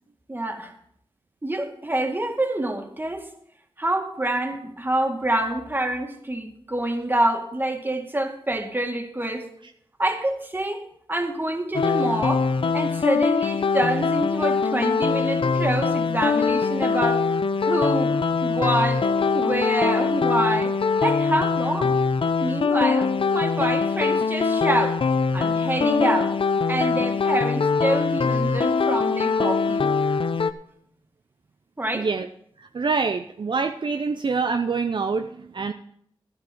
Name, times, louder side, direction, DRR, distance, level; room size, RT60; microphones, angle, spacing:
voice 1, 0.3-0.7 1.4-3.3 3.8-9.5 10.0-10.8 11.1-12.5 12.7-17.2 17.6-18.2 18.4-19.0 19.3-20.8 21.0-22.0 22.4-25.0 25.3-26.3 26.7-29.9 31.8-32.1, right 1 dB, 20° right, 4 dB, 2.0 m, -26 dB
sound 1, 11.7-30.5, left 4 dB, 65° left, 0.6 m, -22 dB
voice 2, 31.9-32.3 32.6-35.7, right 4 dB, 55° right, 7 dB, 0.6 m, -25 dB
12.0 x 10.5 x 4.6 m, 0.69 s
cardioid pair, 55°, 10 cm